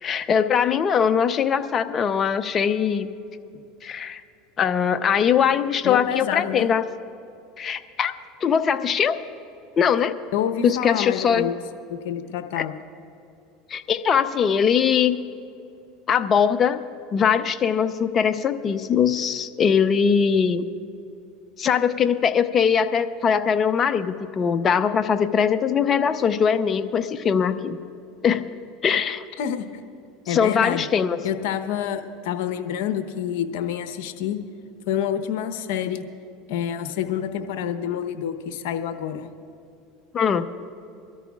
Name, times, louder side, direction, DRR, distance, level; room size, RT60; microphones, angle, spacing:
voice 1, 0.0-3.1 3.8-4.2 4.6-6.8 7.6-8.1 8.4-9.2 9.8-10.2 10.6-11.5 12.6-12.7 13.7-15.2 16.1-16.8 17.1-20.7 21.6-27.8 28.2-28.5 28.8-29.2 30.3-31.2 40.1-40.4, left 7 dB, 35° left, 10 dB, 0.7 m, -21 dB
voice 2, 5.8-6.7 10.3-11.6 11.9-12.8 29.4-29.7 30.3-30.8 31.2-34.4 34.9-36.0 36.5-39.3, left 9 dB, 70° left, 8 dB, 0.9 m, -27 dB
23.5 x 13.5 x 2.4 m, 2.7 s
hypercardioid pair, 95°, 0 cm